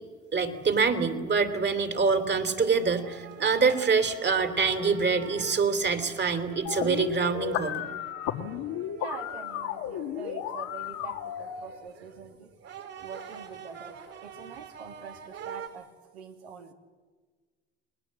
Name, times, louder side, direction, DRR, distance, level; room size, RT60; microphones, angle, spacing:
voice 1, 0.3-7.8, right 5 dB, 35° right, 8 dB, 3.2 m, -25 dB
sound 1, 1.6-15.7, right 7 dB, 55° right, 4.9 m, -46 dB
sound 2, 6.7-11.7, left 10 dB, 70° left, 2.0 m, -34 dB
voice 2, 8.9-12.5 13.0-16.7, right 6 dB, 90° right, 4 dB, 2.5 m, -45 dB
30.0 x 20.5 x 7.7 m, 1.4 s
hypercardioid pair, 70°, 31 cm